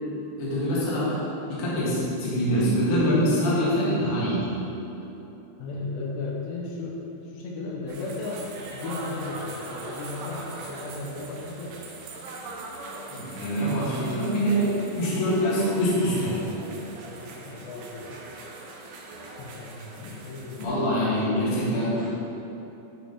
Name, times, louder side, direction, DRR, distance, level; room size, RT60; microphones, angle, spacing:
voice 1, 0.4-1.2 1.5-4.5 13.1-16.5 20.6-22.1, equal, 45° left, -8 dB, 2.0 m, -24 dB
voice 2, 5.6-11.8 17.1-18.3 19.4-21.5, left 3 dB, 80° left, -3 dB, 2.9 m, -36 dB
sound 1, 7.9-20.6, right 2 dB, 75° right, 2.9 m, -41 dB
10.5 x 5.2 x 4.3 m, 3.0 s
omnidirectional pair, 5.1 m